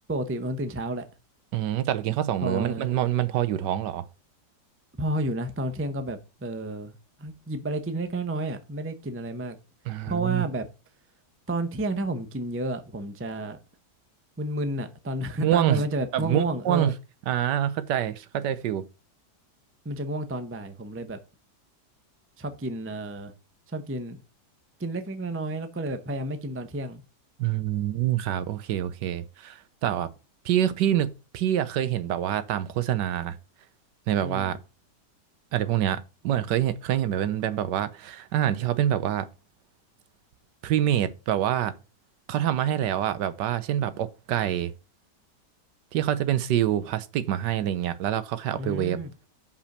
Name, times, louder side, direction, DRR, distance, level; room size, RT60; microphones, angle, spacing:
voice 1, 0.1-1.0 2.4-2.9 5.0-9.6 10.1-10.7 11.5-13.6 14.4-16.9 19.8-21.2 22.4-23.3 23.7-24.2 24.8-27.0 34.2-34.6 48.6-49.1, right 1 dB, 20° right, 0.4 m, -31 dB
voice 2, 1.5-4.0 9.9-10.4 15.4-15.8 16.1-16.9 17.3-18.9 27.4-30.1 30.4-33.4 34.1-34.6 35.5-39.3 40.6-41.7 42.3-44.7 45.9-49.0, right 11 dB, 80° right, 1.3 m, -26 dB
5.5 x 5.2 x 6.6 m
omnidirectional pair, 1.9 m